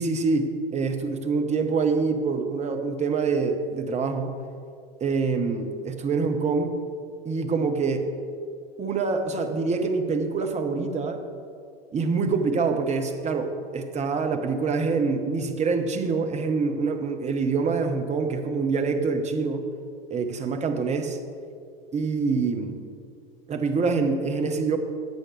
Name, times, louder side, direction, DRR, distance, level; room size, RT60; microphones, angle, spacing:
voice 1, 0.0-4.3 5.0-6.8 7.2-8.1 8.8-11.2 11.9-19.6 20.1-21.2 21.9-22.8 23.5-24.8, right 4 dB, 20° right, 6 dB, 1.1 m, -25 dB
17.0 x 8.2 x 3.3 m, 2.3 s
figure-of-eight pair, 85°, 31 cm